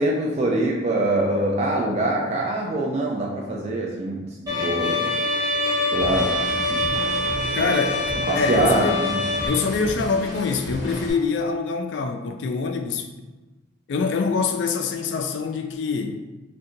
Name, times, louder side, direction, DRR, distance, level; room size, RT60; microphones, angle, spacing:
voice 1, 0.0-5.1 5.9-6.4 6.7-6.8 8.3-9.2, right 2 dB, 35° right, -2 dB, 0.3 m, -24 dB
Bowed string instrument, 4.5-9.5, left 2 dB, 15° right, 1.0 m, -25 dB
sound 1, 6.0-11.1, equal, 20° left, 1.3 m, -33 dB
voice 2, 7.5-9.0 9.5-13.1 13.9-16.2, left 4 dB, 60° left, 5 dB, 0.3 m, -25 dB
2.7 x 2.2 x 3.7 m, 1.1 s
head